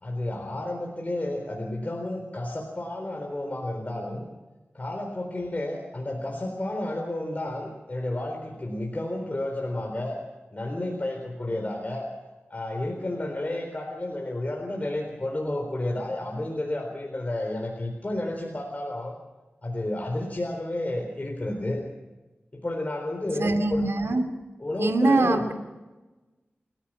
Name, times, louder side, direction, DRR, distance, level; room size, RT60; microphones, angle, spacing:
voice 1, 0.0-4.2 4.7-10.2 10.5-12.1 12.5-19.1 19.6-21.8 22.5-23.9 24.6-25.4, left 1 dB, 35° left, 1 dB, 4.0 m, -31 dB
voice 2, 23.4-24.2 24.8-25.5, right 2 dB, 85° right, 5 dB, 2.6 m, -23 dB
30.0 x 14.5 x 6.1 m, 1.1 s
wide cardioid pair, 80°, 4 cm